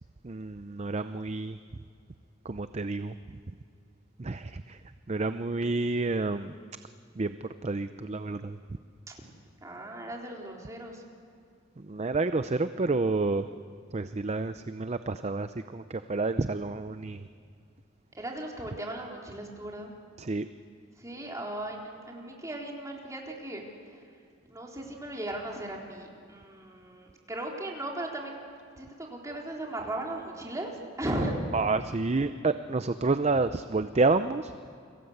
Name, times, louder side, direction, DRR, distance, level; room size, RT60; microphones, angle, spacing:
voice 1, 0.2-1.6 2.4-3.1 4.2-4.8 5.1-6.5 7.2-7.3 7.6-8.6 11.9-13.5 13.9-17.3 20.2-20.5 31.5-34.5, right 3 dB, 35° right, 11 dB, 0.6 m, -29 dB
voice 2, 9.6-11.0 18.1-19.9 21.0-24.1 24.5-28.4 28.8-31.3, right 1 dB, 15° right, -1 dB, 3.8 m, -37 dB
29.5 x 22.5 x 8.0 m, 2.3 s
head